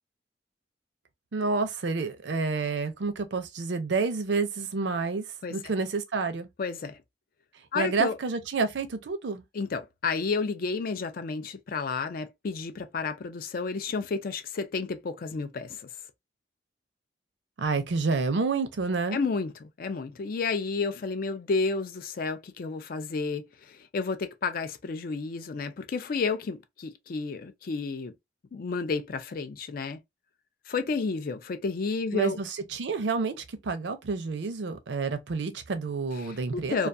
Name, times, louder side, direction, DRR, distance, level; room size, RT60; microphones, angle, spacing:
voice 1, 1.3-5.2 5.5-6.5 7.8-9.4 17.6-19.2 32.1-36.9, right 4 dB, 75° right, 0.5 m, -29 dB
voice 2, 6.6-7.0 7.7-8.2 9.5-15.9 19.1-28.1 28.5-30.0 30.7-32.4 36.2-36.9, left 4 dB, 50° left, 0.4 m, -31 dB
2.3 x 2.3 x 2.5 m
head